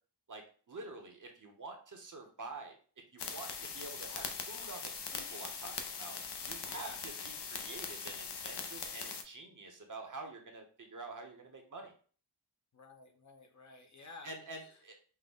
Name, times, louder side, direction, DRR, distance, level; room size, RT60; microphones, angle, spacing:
voice 1, 0.3-2.8 3.1-6.2 6.4-6.9 7.2-11.9 14.2-14.9, right 3 dB, 50° right, 3 dB, 0.9 m, -48 dB
sound 1, 3.2-9.2, left 5 dB, 80° left, 0.7 m, -41 dB
voice 2, 6.7-7.0 12.7-14.8, left 3 dB, 45° left, 4 dB, 0.7 m, -53 dB
5.7 x 2.1 x 3.5 m, 0.41 s
wide cardioid pair, 130°, 41 cm